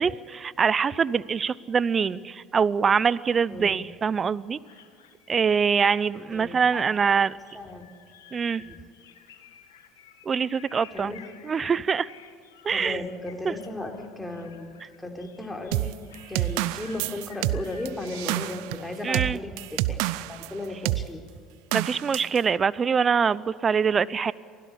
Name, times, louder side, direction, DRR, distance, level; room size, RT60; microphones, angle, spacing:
voice 1, 0.0-4.6 5.3-7.4 8.3-8.6 10.2-11.1 11.4-12.1 12.6-13.0 13.4-13.5 19.0-19.4 21.7-24.3, right 6 dB, 35° right, 20 dB, 0.7 m, -24 dB
voice 2, 3.5-3.8 6.3-6.8 7.5-7.9 8.6-8.8 10.9-11.2 12.7-14.7 15.0-16.0 16.3-21.2, left 2 dB, 10° left, 3 dB, 4.1 m, -36 dB
sound 1, 4.6-18.6, left 8 dB, 85° left, 1.8 m, -53 dB
sound 2, 15.7-20.5 20.9-21.1 21.7-22.4, right 17 dB, 75° right, 0.6 m, -28 dB
24.0 x 16.5 x 8.4 m, 2.2 s
hypercardioid pair, 70°, 0 cm